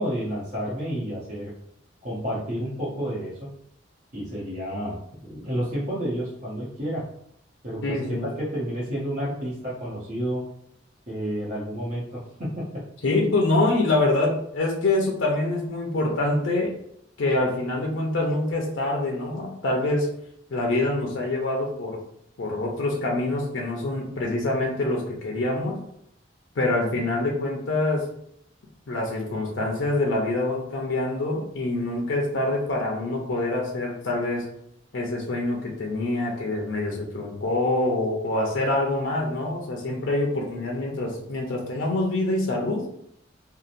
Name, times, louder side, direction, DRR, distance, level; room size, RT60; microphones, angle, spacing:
voice 1, 0.0-1.5 2.0-3.4 4.1-7.0 7.6-10.4 11.1-12.6, equal, 40° right, -8 dB, 0.7 m, -30 dB
voice 2, 7.8-8.3 13.0-16.7 17.2-20.1 20.5-22.0 22.4-25.8 26.6-28.1 28.9-34.4 34.9-42.8, left 2 dB, 85° left, 0 dB, 0.5 m, -25 dB
2.8 x 2.1 x 2.5 m, 0.73 s
head